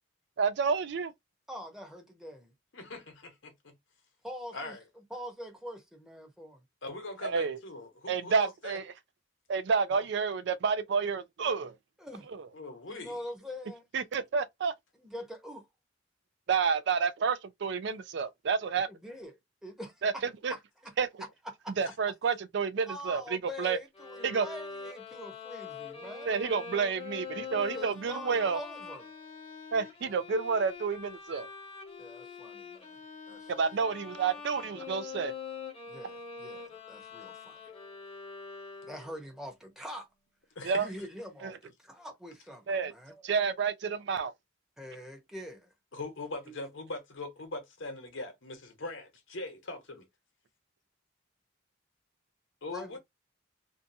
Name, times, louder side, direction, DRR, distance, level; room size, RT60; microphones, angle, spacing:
voice 1, 0.4-1.1 7.2-7.6 8.1-8.8 9.5-11.7 12.4-12.5 13.9-14.7 16.5-18.9 20.0-20.1 20.4-20.5 21.0-21.1 21.8-23.8 24.2-24.5 26.3-28.6 29.7-31.5 33.5-35.3 40.6-40.9 41.4-41.5 42.7-42.9 43.2-44.3, right 5 dB, 65° right, 0.4 m, -29 dB
voice 2, 1.5-2.5 4.2-4.7 5.1-6.6 9.9-10.0 12.0-12.3 12.9-13.8 15.0-15.7 18.9-19.4 19.6-20.0 20.5-20.9 21.6-21.8 22.9-26.4 27.5-29.1 32.0-33.0 33.3-33.5 35.9-37.6 38.8-40.1 40.8-43.2 44.8-45.7 46.5-46.6 52.7-53.0, equal, 5° right, 0.8 m, -44 dB
voice 3, 2.7-3.8 4.5-4.8 6.8-8.8 12.5-13.2 21.8-21.9 40.5-40.9 45.9-50.1 52.6-53.0, left 2 dB, 80° left, 1.0 m, -41 dB
Bowed string instrument, 23.9-39.2, left 5 dB, 30° left, 0.8 m, -44 dB
2.6 x 2.2 x 2.6 m
head